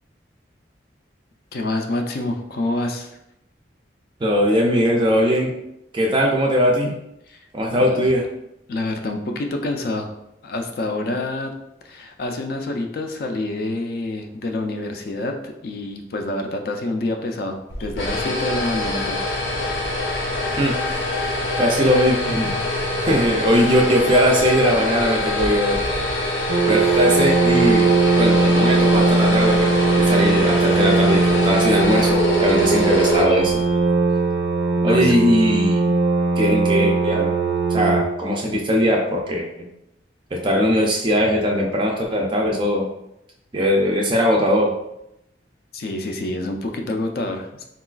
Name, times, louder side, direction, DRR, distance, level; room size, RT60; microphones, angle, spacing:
voice 1, 1.5-3.2 7.3-7.4 7.7-8.0 8.7-10.1 10.4-11.5 11.8-19.2 26.7-27.1 34.8-35.1 45.7-47.6, left 2 dB, 55° left, 4 dB, 0.4 m, -27 dB
voice 2, 4.2-5.5 5.9-6.9 7.5-8.2 20.6-20.7 21.6-22.5 23.0-25.8 26.7-27.8 28.2-33.6 34.8-36.0 36.4-37.3 37.7-39.5 40.3-42.9 43.5-44.7, equal, 25° right, 0 dB, 0.3 m, -20 dB
sound 1, 17.7-33.9, left 2 dB, 80° left, 0.7 m, -24 dB
sound 2, 26.5-38.0, right 3 dB, 80° right, 0.5 m, -19 dB
3.8 x 2.3 x 2.3 m, 0.83 s
head